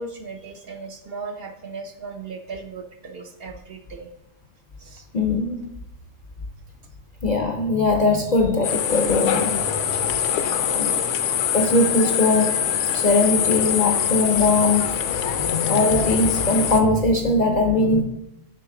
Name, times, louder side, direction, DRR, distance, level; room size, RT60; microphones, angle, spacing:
voice 1, 0.0-4.1 4.8-5.1 15.3-15.5, right 4 dB, 60° right, 4 dB, 0.7 m, -37 dB
voice 2, 5.1-5.7 7.2-9.7 10.7-10.9 11.5-12.6 12.9-15.0 15.3-18.0, left 2 dB, 55° left, 2 dB, 0.5 m, -20 dB
sound 1, 8.6-16.8, left 8 dB, 75° left, 0.9 m, -23 dB
6.7 x 4.8 x 3.7 m, 0.86 s
omnidirectional pair, 1.3 m